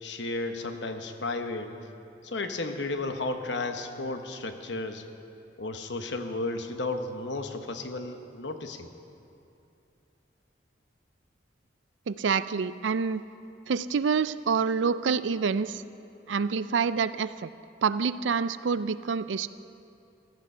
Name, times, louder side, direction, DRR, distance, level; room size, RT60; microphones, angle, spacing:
voice 1, 0.0-1.7 2.2-5.1 5.6-8.9, left 2 dB, 75° left, 6 dB, 1.1 m, -33 dB
voice 2, 12.1-13.2 13.7-15.8 16.3-17.5 17.8-19.5, right 5 dB, 90° right, 15 dB, 0.5 m, -27 dB
16.0 x 14.0 x 5.6 m, 2.7 s
head